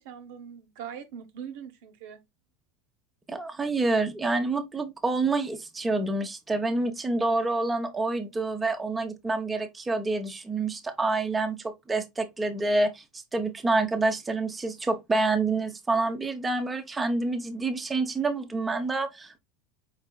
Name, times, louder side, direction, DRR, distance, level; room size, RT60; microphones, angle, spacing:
voice 1, 0.0-2.2, right 8 dB, 75° right, 0.8 m, -41 dB
voice 2, 3.3-19.4, right 3 dB, 15° right, 0.7 m, -27 dB
4.5 x 4.0 x 2.2 m
supercardioid pair, 120°, 0 cm